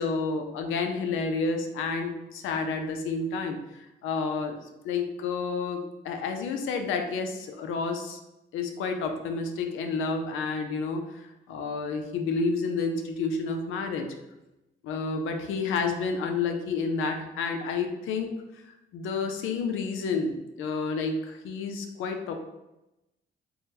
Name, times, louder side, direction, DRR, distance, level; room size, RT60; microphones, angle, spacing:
voice 1, 0.0-4.6 4.8-8.2 8.5-14.1 14.8-18.4 18.9-22.3, left 4 dB, 85° left, 5 dB, 0.5 m, -30 dB
3.5 x 2.1 x 2.9 m, 0.95 s
cardioid pair, 90°, 20 cm